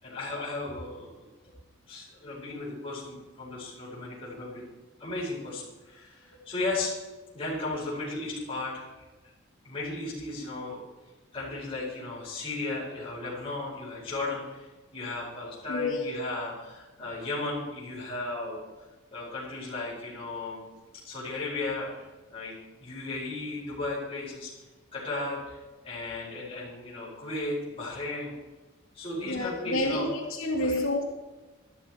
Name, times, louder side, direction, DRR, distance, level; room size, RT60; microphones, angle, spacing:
voice 1, 0.0-1.3 1.9-4.6 5.0-6.9 7.3-8.9 9.6-10.8 11.3-14.7 14.9-18.6 19.1-20.6 21.0-22.5 22.8-24.5 24.9-25.6 25.8-28.3 28.9-30.1 30.6-30.8, left 2 dB, 25° left, -8 dB, 5.1 m, -35 dB
voice 2, 15.7-16.2 29.2-31.0, left 1 dB, 75° left, 1 dB, 2.6 m, -29 dB
13.0 x 13.0 x 4.5 m, 1.2 s
head